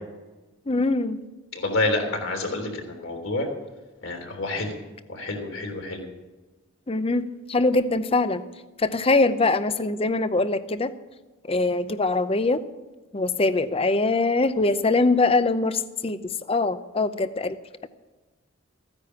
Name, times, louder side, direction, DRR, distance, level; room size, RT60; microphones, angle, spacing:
voice 1, 0.7-1.2 6.9-8.4 8.8-10.9 11.5-12.6 13.1-16.2 16.5-17.6, left 3 dB, 25° left, 12 dB, 0.6 m, -23 dB
voice 2, 1.5-3.5 4.0-4.7 5.1-6.0, left 2 dB, 70° left, 1 dB, 3.3 m, -28 dB
15.0 x 9.7 x 5.7 m, 1.2 s
head